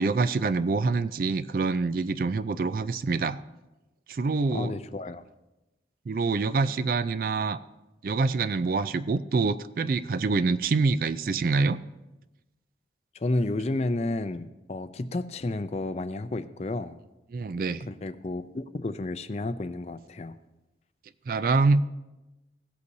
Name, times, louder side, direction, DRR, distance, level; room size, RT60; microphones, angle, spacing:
voice 1, 0.0-3.4 4.1-4.7 6.1-7.6 8.0-11.8 17.3-17.9 21.3-21.8, right 4 dB, 50° right, 13 dB, 0.3 m, -26 dB
voice 2, 4.5-5.3 13.1-17.0 17.9-20.4, left 2 dB, 35° left, 12 dB, 0.4 m, -31 dB
17.0 x 8.2 x 2.7 m, 1.0 s
head